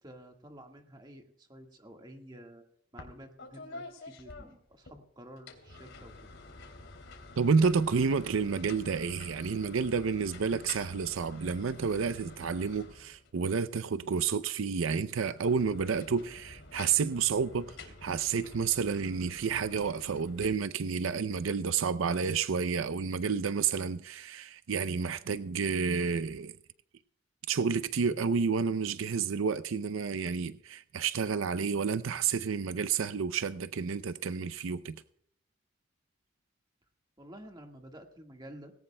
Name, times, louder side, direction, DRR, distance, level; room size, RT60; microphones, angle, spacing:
voice 1, 0.0-2.6 2.9-6.1 37.2-38.7, right 1 dB, 20° right, 1.6 m, -50 dB
sound 1, 3.0-3.1 3.4-5.0 5.4-13.4 15.2-20.4, left 3 dB, 75° left, 2.9 m, -49 dB
voice 2, 7.4-26.6 27.5-35.0, right 5 dB, 85° right, 0.5 m, -30 dB
18.5 x 17.5 x 2.2 m
head